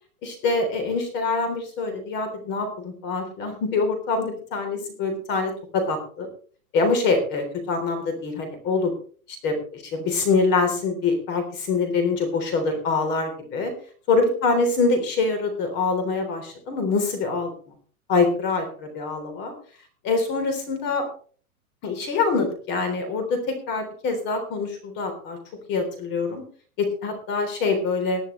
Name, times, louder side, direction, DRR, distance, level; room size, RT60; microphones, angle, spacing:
voice 1, 0.2-6.3 6.7-8.9 9.4-13.7 14.1-17.5 18.1-19.5 20.0-21.0 21.8-25.4 25.7-26.4 26.8-28.2, left 4 dB, 25° left, 6 dB, 3.5 m, -25 dB
19.5 x 10.5 x 3.2 m, 0.43 s
hypercardioid pair, 165°, 43 cm